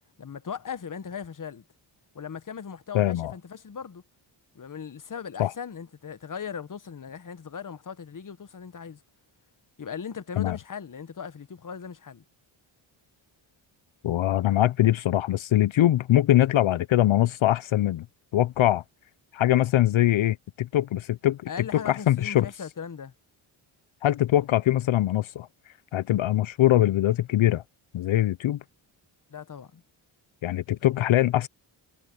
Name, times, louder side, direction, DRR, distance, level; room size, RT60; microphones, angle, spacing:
voice 1, 0.2-1.6 2.1-4.0 4.5-9.0 9.8-12.2 21.5-23.1 29.3-29.8, left 7 dB, 40° left, 1.3 m, -38 dB
voice 2, 2.9-3.3 5.4-5.5 10.4-10.6 14.0-18.1 18.3-18.8 19.3-21.4 21.7-22.5 24.0-25.5 25.9-27.6 27.9-28.6 30.4-31.5, left 13 dB, 70° left, 0.8 m, -22 dB
cardioid pair, 55°, 50 cm